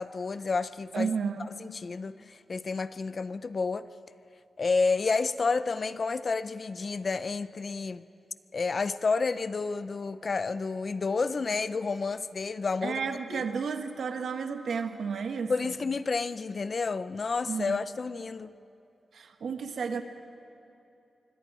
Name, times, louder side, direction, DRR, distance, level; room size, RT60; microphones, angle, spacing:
voice 1, 0.0-1.1 1.5-3.9 4.6-8.0 8.5-13.0 13.3-13.5 15.5-18.5, left 4 dB, 35° left, 14 dB, 0.5 m, -30 dB
voice 2, 0.9-1.5 12.8-15.7 17.4-17.9 19.1-20.0, right 5 dB, 70° right, 7 dB, 1.4 m, -32 dB
26.0 x 24.5 x 4.9 m, 2.8 s
wide cardioid pair, 175°, 0 cm